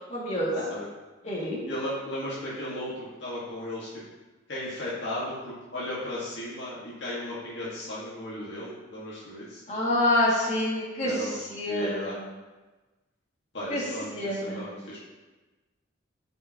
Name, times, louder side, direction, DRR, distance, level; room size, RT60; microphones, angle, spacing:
voice 1, 0.1-0.7 1.2-1.6 9.7-12.2 13.7-13.8 14.1-14.6, left 1 dB, 35° left, -6 dB, 2.2 m, -27 dB
voice 2, 1.7-4.0 4.5-9.6 11.0-11.4 11.7-12.1 13.5-15.0, left 1 dB, 65° left, -8 dB, 1.7 m, -35 dB
11.0 x 5.4 x 2.9 m, 1.2 s
head